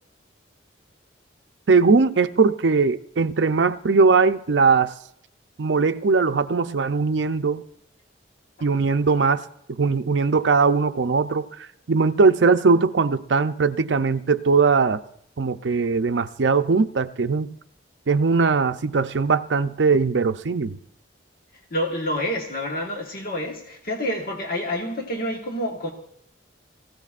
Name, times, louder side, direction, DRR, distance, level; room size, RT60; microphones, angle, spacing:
voice 1, 1.7-4.9 5.6-7.6 8.6-9.4 9.7-11.5 11.9-15.0 15.4-17.6 18.1-20.8, right 4 dB, 75° right, 0.6 m, -20 dB
voice 2, 21.7-25.9, equal, 55° left, 1.4 m, -28 dB
23.5 x 16.0 x 2.5 m
head